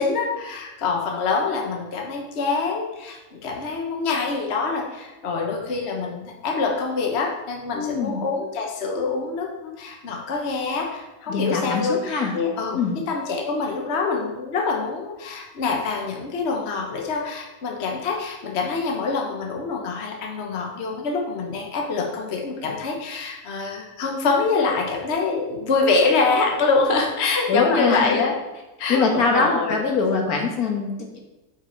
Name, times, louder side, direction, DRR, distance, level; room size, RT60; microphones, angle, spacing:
voice 1, 0.0-12.8 13.1-28.3 28.8-29.8, left 4 dB, 45° left, 1 dB, 1.3 m, -25 dB
voice 2, 7.7-8.2 11.3-12.3 12.7-13.0 27.5-28.2 28.9-31.2, left 4 dB, 70° left, 1 dB, 1.8 m, -23 dB
8.3 x 6.0 x 4.4 m, 1.1 s
omnidirectional pair, 1.6 m